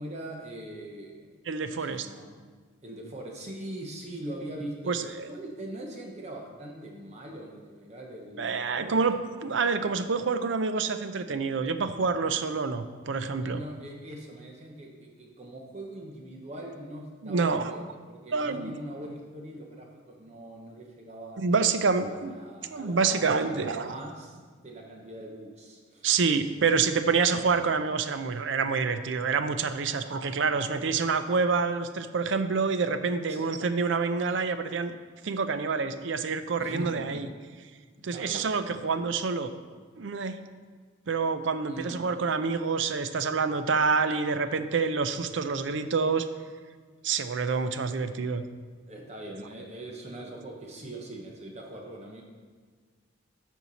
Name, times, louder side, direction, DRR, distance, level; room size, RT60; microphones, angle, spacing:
voice 1, 0.0-1.3 1.7-2.3 2.8-9.0 13.4-21.6 22.1-24.4 24.6-26.1 29.9-30.7 33.3-33.5 36.6-37.2 38.0-38.5 41.7-42.0 48.9-52.2, right 1 dB, 35° right, 0 dB, 0.9 m, -42 dB
voice 2, 1.5-2.1 4.9-5.3 8.4-9.1 9.4-13.6 17.2-17.8 18.3-18.7 21.4-22.4 22.7-23.9 26.0-34.9 35.2-37.3 38.0-39.5 40.0-40.4 41.1-46.3 47.0-48.4, right 5 dB, 70° right, 10 dB, 0.5 m, -27 dB
13.0 x 4.6 x 4.1 m, 1.5 s
head